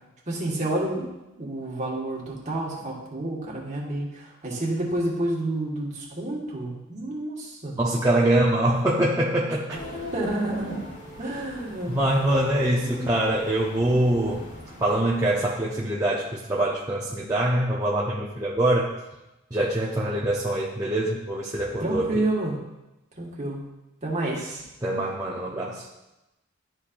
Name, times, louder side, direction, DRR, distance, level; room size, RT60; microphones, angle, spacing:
voice 1, 0.3-1.1 1.4-7.8 9.7-9.8 10.1-10.8 11.2-12.9 21.8-22.6 23.2-23.6 24.0-24.6, right 1 dB, 35° right, -4 dB, 1.5 m, -29 dB
voice 2, 7.8-9.8 11.9-14.5 14.8-18.9 19.5-22.3 24.8-25.8, right 1 dB, 15° right, -5 dB, 0.6 m, -24 dB
sound 1, 9.7-15.8, left 1 dB, 50° left, 2.1 m, -39 dB
12.0 x 4.2 x 2.5 m, 0.97 s
head